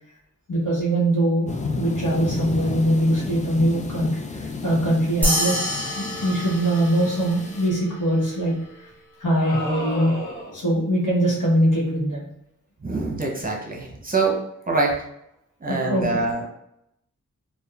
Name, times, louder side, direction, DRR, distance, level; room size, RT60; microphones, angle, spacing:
voice 1, 0.5-1.5 1.7-4.1 4.6-8.5 9.2-10.1 10.5-12.2 15.7-16.2, right 1 dB, 85° left, -6 dB, 1.0 m, -22 dB
sound 1, 1.5-7.7, left 3 dB, 25° left, 0.3 m, -32 dB
sound 2, 5.2-8.0, equal, 5° left, 1.2 m, -27 dB
sound 3, 9.4-10.7, left 1 dB, 65° left, 0.7 m, -32 dB
voice 2, 12.8-14.4 14.7-15.0 15.6-16.5, right 3 dB, 30° right, -1 dB, 0.7 m, -24 dB
3.0 x 2.2 x 2.3 m, 0.77 s
cardioid pair, 45°, 30 cm